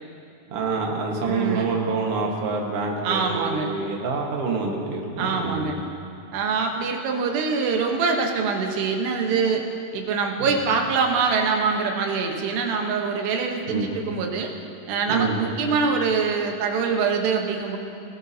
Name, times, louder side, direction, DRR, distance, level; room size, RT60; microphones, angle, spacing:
voice 1, 0.5-5.7 10.5-10.6 13.7-13.9 15.1-15.4, right 4 dB, 55° right, 0 dB, 1.7 m, -27 dB
voice 2, 1.2-1.8 3.0-3.7 5.2-5.8 6.3-9.6 9.9-14.5 14.9-17.8, right 5 dB, 80° right, 2 dB, 3.2 m, -24 dB
20.5 x 17.5 x 2.8 m, 2.6 s
omnidirectional pair, 4.8 m